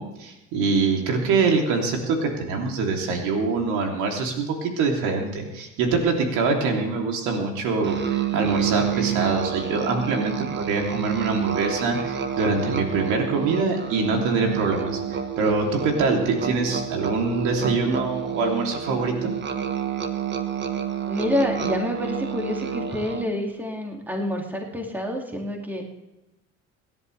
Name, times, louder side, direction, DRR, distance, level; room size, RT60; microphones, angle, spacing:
voice 1, 0.0-19.3, right 4 dB, 80° right, 1 dB, 3.0 m, -24 dB
Musical instrument, 7.8-23.4, right 8 dB, 40° right, 1.4 m, -29 dB
voice 2, 21.1-25.8, left 1 dB, 5° right, 1 dB, 2.4 m, -27 dB
25.5 x 11.0 x 3.3 m, 1.0 s
cardioid pair, 115°, 29 cm